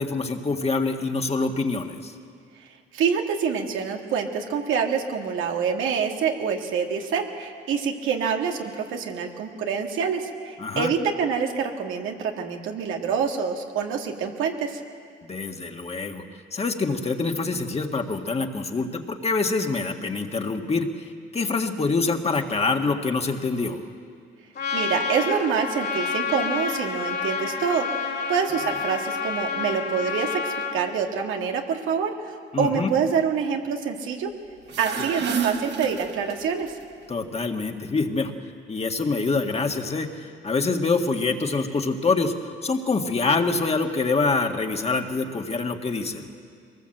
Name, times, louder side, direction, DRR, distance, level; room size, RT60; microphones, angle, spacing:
voice 1, 0.0-2.1 10.6-10.9 15.2-16.2 16.5-23.8 32.5-32.9 35.0-35.1 37.1-38.3 38.7-42.3 42.6-46.3, left 3 dB, 30° left, 4 dB, 1.8 m, -25 dB
voice 2, 2.9-14.8 24.7-27.9 28.3-34.3 34.8-36.7, right 6 dB, 90° right, 2 dB, 2.0 m, -26 dB
Trumpet, 24.5-30.8, left 5 dB, 55° left, 3.1 m, -29 dB
sound 1, 34.6-36.7, right 6 dB, 60° right, 1.8 m, -30 dB
22.5 x 19.0 x 7.9 m, 2.2 s
cardioid pair, 90°, 20 cm